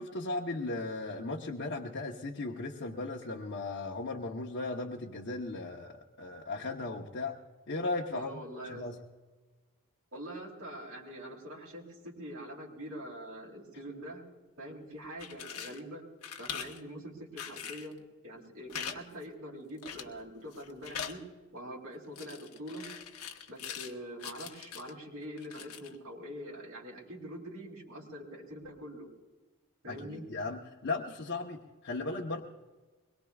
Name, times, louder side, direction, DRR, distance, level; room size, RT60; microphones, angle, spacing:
voice 1, 0.0-7.4 7.7-9.0 29.9-32.4, left 2 dB, 55° left, -2 dB, 0.9 m, -37 dB
voice 2, 8.1-8.9 10.1-14.2 14.6-16.1 16.4-21.2 21.5-22.9 23.5-29.1 29.8-30.2, equal, 80° right, -4 dB, 3.4 m, -44 dB
sound 1, 15.0-15.8 16.2-16.8 17.4-17.9 18.7-19.0 19.2-19.3 19.8-20.2 20.5-21.2 22.2-23.9 24.2-24.9 25.4-26.0, left 8 dB, 85° left, 1.1 m, -42 dB
22.5 x 21.5 x 2.4 m, 1.3 s
head